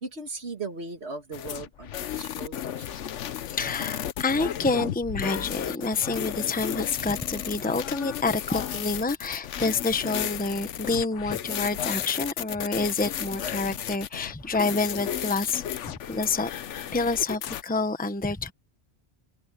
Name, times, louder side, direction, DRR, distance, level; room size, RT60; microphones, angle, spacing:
voice 1, 0.0-3.0, right 3 dB, 65° right, 2.4 m, -38 dB
sound 1, 1.3-17.6, left 10 dB, 85° left, 1.1 m, -33 dB
voice 2, 3.5-16.5 16.9-18.5, left 3 dB, 10° left, 1.0 m, -28 dB
omnidirectional pair, 1.2 m